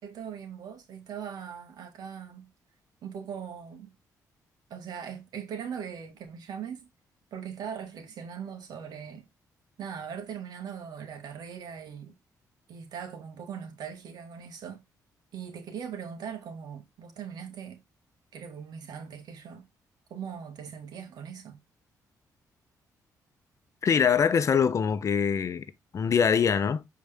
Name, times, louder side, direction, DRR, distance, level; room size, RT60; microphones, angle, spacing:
voice 1, 0.0-2.5 3.0-3.9 4.7-6.9 7.3-9.3 9.8-12.1 12.7-14.8 15.3-17.8 18.3-19.7 20.1-21.6, right 7 dB, 75° right, 1.8 m, -40 dB
voice 2, 23.8-25.6 25.9-26.9, left 7 dB, 45° left, 0.8 m, -23 dB
7.2 x 4.7 x 3.4 m
cardioid pair, 105°, 7 cm